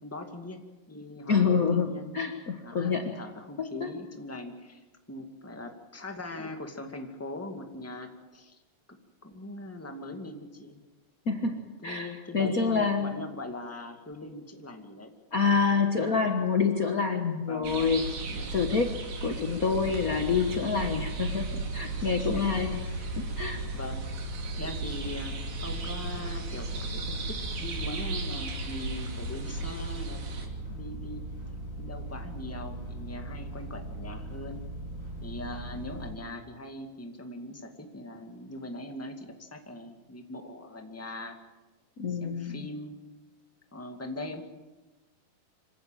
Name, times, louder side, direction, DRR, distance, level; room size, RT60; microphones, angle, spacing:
voice 1, 0.0-2.2 2.6-8.6 8.9-9.0 9.2-10.8 11.8-15.1 16.0-16.2 17.5-18.0 18.3-18.5 22.0-23.1 23.7-24.1 24.6-30.2 30.7-31.2 31.8-34.6 35.2-41.4 42.1-43.0 43.7-44.4, left 2 dB, 5° left, 4 dB, 1.2 m, -41 dB
voice 2, 1.3-3.0 3.8-3.9 11.3-11.6 11.8-13.1 15.3-18.0 18.5-18.9 19.2-22.8 23.2-23.6 42.0-42.7, left 5 dB, 70° left, 4 dB, 0.8 m, -27 dB
sound 1, 17.6-30.5, right 3 dB, 80° right, 4.6 m, -36 dB
sound 2, 19.8-36.1, right 1 dB, 20° right, 6.5 m, -40 dB
26.0 x 16.5 x 9.1 m, 1.2 s
omnidirectional pair, 3.9 m